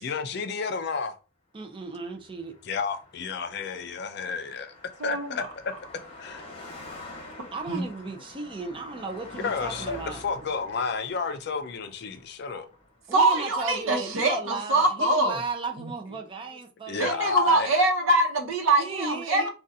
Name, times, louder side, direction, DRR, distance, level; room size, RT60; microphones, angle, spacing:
voice 1, 0.0-1.2 2.6-4.7 5.0-5.7 6.2-6.5 6.9-7.1 9.3-12.7 16.9-17.7, left 5 dB, 55° left, 0.4 m, -31 dB
voice 2, 1.5-2.5 7.5-10.2 13.1-17.3 18.8-19.5, right 3 dB, 25° right, 0.5 m, -35 dB
Car passing by, 2.1-13.6, left 2 dB, 30° left, 0.9 m, -46 dB
voice 3, 5.0-5.4 7.7-7.8 13.1-15.3 15.8-15.9 17.0-19.5, right 2 dB, 80° right, 0.9 m, -23 dB
3.8 x 2.3 x 2.6 m
head